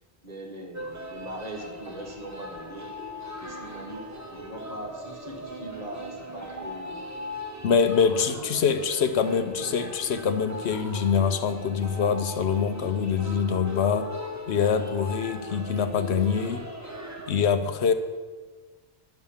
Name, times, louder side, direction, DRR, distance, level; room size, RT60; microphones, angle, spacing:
voice 1, 0.2-2.9 3.4-7.1 8.0-8.5 9.6-9.7, right 1 dB, 35° right, 0 dB, 1.5 m, -41 dB
sound 1, 0.7-17.3, left 1 dB, 15° right, 1.2 m, -39 dB
voice 2, 7.6-14.1 14.5-16.7 17.3-17.9, left 6 dB, 75° left, 9 dB, 1.0 m, -24 dB
11.0 x 5.7 x 7.2 m, 1.4 s
omnidirectional pair, 1.2 m